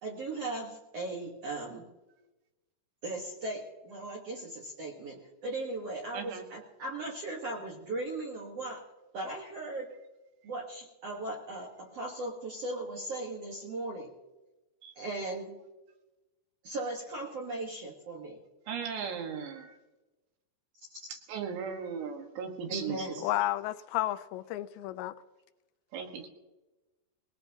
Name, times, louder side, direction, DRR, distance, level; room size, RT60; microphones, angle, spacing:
voice 1, 0.0-1.9 3.0-8.8 9.1-9.9 10.4-14.1 14.9-15.6 16.6-18.4 20.8-21.1 22.7-23.3, right 2 dB, 65° right, 1.6 m, -38 dB
voice 2, 6.1-6.5 14.8-15.0 18.7-19.8 21.3-23.2 25.9-26.3, right 6 dB, 80° right, 3.8 m, -37 dB
voice 3, 23.2-25.1, left 14 dB, 85° left, 2.9 m, -32 dB
21.0 x 18.0 x 2.9 m
omnidirectional pair, 5.0 m